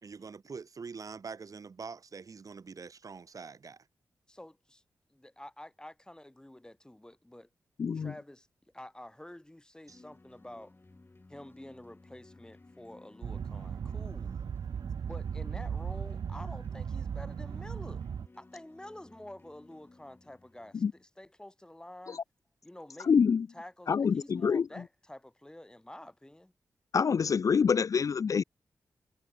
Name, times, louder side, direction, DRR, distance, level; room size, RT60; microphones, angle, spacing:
voice 1, 0.0-3.8 9.9-10.0, right 5 dB, 55° right, 1.3 m, -44 dB
voice 2, 4.3-4.8 5.1-7.5 7.9-8.5 8.7-10.7 11.3-14.4 15.1-18.1 18.4-22.2 22.6-23.1 23.5-26.5, left 1 dB, 10° left, 2.3 m, -49 dB
voice 3, 7.8-8.1 20.8-20.9 22.1-22.2 23.0-23.5 23.9-24.7 26.9-28.4, left 6 dB, 50° left, 0.3 m, -26 dB
sound 1, 9.9-21.0, left 2 dB, 30° left, 3.6 m, -58 dB
sound 2, 13.2-18.3, right 7 dB, 75° right, 0.9 m, -37 dB
cardioid pair, 60°, 7 cm